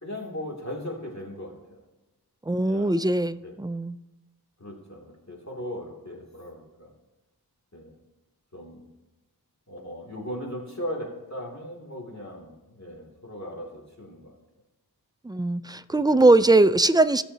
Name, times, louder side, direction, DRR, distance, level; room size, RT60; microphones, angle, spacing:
voice 1, 0.0-1.8 2.6-3.0 3.4-3.5 4.6-6.9 7.7-7.9 8.5-8.8 9.7-14.4 15.9-16.1, equal, 45° left, -2 dB, 2.5 m, -38 dB
voice 2, 2.5-4.0 15.2-17.2, right 2 dB, 10° right, 13 dB, 0.3 m, -20 dB
17.0 x 6.8 x 2.8 m, 1.1 s
wide cardioid pair, 40°, 39 cm